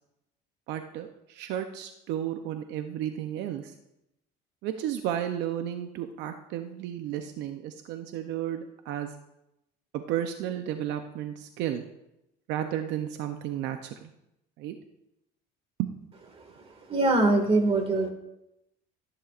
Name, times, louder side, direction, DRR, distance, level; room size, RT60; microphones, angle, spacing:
voice 1, 0.7-3.7 4.6-9.1 9.9-11.8 12.5-14.1 14.6-14.7 15.8-15.9, right 11 dB, 70° right, 7 dB, 0.7 m, -33 dB
voice 2, 16.9-18.1, right 2 dB, 30° right, 4 dB, 2.0 m, -22 dB
14.5 x 10.0 x 2.5 m, 0.88 s
cardioid pair, 120°, 19 cm